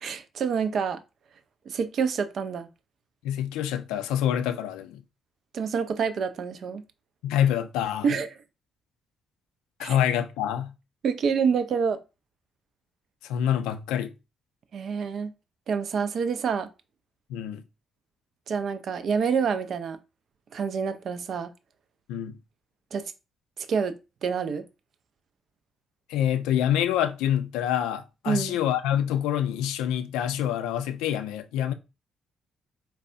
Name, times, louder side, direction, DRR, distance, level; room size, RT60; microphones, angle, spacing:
voice 1, 0.0-1.0 1.7-2.7 5.5-6.8 8.0-8.3 9.8-10.0 11.0-12.0 14.7-15.3 15.7-16.7 18.5-20.0 20.5-21.5 22.9-23.0 23.6-23.9 24.2-24.6 28.3-28.6, right 6 dB, 55° right, 0.4 m, -27 dB
voice 2, 3.2-5.0 7.2-8.1 9.8-10.7 13.2-14.1 17.3-17.6 22.1-22.4 26.1-31.7, left 10 dB, 70° left, 0.3 m, -26 dB
4.0 x 2.2 x 2.5 m
figure-of-eight pair, 40°, 0 cm